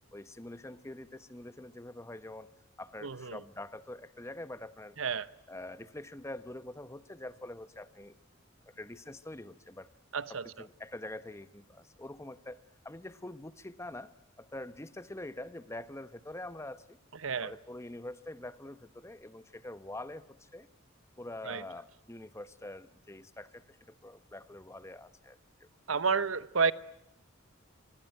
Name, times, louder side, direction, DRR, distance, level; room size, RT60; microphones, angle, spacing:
voice 1, 0.1-2.5 2.8-5.0 5.5-8.2 8.7-9.9 10.3-12.6 12.8-14.1 14.4-17.0 17.4-20.7 21.2-25.7, left 1 dB, 15° left, 1.0 m, -45 dB
voice 2, 3.0-3.4 5.0-5.3 10.1-10.5 17.2-17.5 21.5-21.6 25.9-26.7, right 5 dB, 85° right, 1.0 m, -30 dB
26.5 x 22.0 x 9.0 m
head